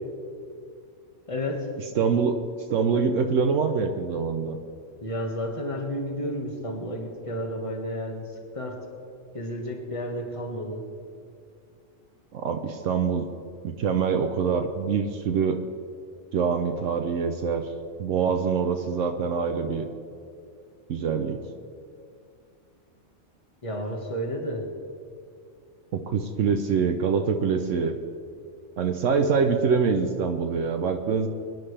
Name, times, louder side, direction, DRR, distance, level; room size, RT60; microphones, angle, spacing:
voice 1, 1.3-1.7 5.0-8.3 8.5-8.8 9.3-10.8 23.6-24.6, equal, 25° left, 1 dB, 1.7 m, -31 dB
voice 2, 2.0-2.4 2.7-4.6 12.3-13.3 13.6-15.6 16.3-17.7 18.0-19.9 20.9-21.4 25.9-28.0 28.8-31.3, right 5 dB, 75° right, 6 dB, 1.1 m, -25 dB
23.0 x 10.5 x 3.3 m, 2.3 s
omnidirectional pair, 1.3 m